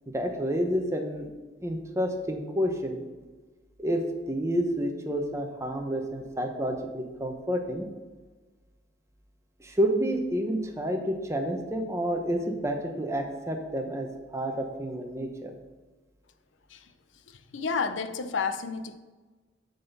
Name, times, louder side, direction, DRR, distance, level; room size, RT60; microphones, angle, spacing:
voice 1, 0.1-1.3 1.6-3.0 3.8-7.9 9.6-14.1 14.3-15.6, equal, 15° right, 0.9 m, -29 dB
voice 2, 17.3-19.0, left 5 dB, 80° left, 0.6 m, -31 dB
7.6 x 4.1 x 6.7 m
head